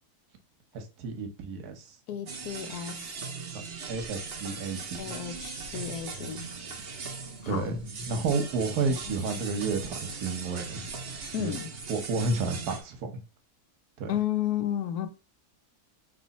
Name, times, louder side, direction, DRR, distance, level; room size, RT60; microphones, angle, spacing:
voice 1, 0.7-1.8 3.5-5.1 7.5-10.9 11.4-11.5 11.9-13.1 14.0-14.1, right 3 dB, 75° right, 1.4 m, -31 dB
voice 2, 2.1-3.1 4.9-6.5 7.4-7.7 8.9-9.3 11.3-11.7 14.1-15.1, left 10 dB, 80° left, 1.1 m, -33 dB
sound 1, 2.3-12.8, right 4 dB, 50° right, 0.8 m, -39 dB
3.3 x 3.0 x 3.9 m
omnidirectional pair, 1.7 m